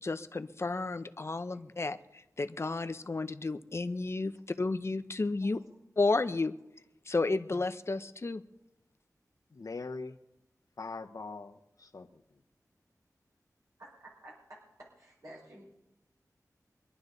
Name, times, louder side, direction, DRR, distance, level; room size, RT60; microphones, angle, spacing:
voice 1, 0.0-5.6 6.0-6.5 7.1-8.4, left 3 dB, 45° left, 11 dB, 0.7 m, -32 dB
voice 2, 9.5-10.2 10.8-12.2, left 3 dB, 65° left, 6 dB, 1.0 m, -42 dB
voice 3, 13.8-15.6, right 1 dB, 55° right, -4 dB, 5.4 m, -52 dB
25.0 x 11.5 x 4.0 m, 0.88 s
wide cardioid pair, 90°, 6 cm